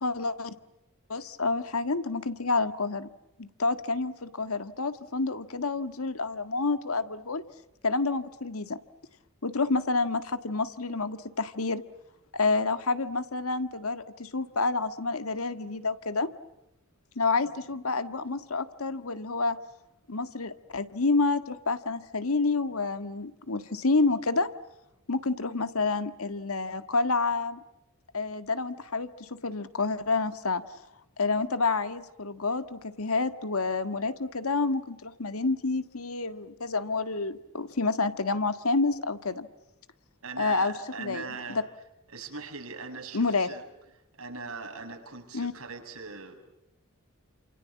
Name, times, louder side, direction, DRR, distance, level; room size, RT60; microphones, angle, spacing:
voice 1, 0.0-0.5 1.1-3.1 3.4-7.4 7.8-8.8 9.4-11.8 12.3-16.3 17.1-19.6 20.1-24.5 25.1-27.6 28.1-30.6 31.2-39.5 40.4-41.6 43.1-43.5 45.3-45.5, left 3 dB, 80° left, 11 dB, 1.7 m, -29 dB
voice 2, 40.2-41.6 42.1-43.6 44.2-46.4, right 4 dB, 85° right, 3 dB, 6.9 m, -40 dB
29.0 x 28.0 x 7.3 m, 0.93 s
head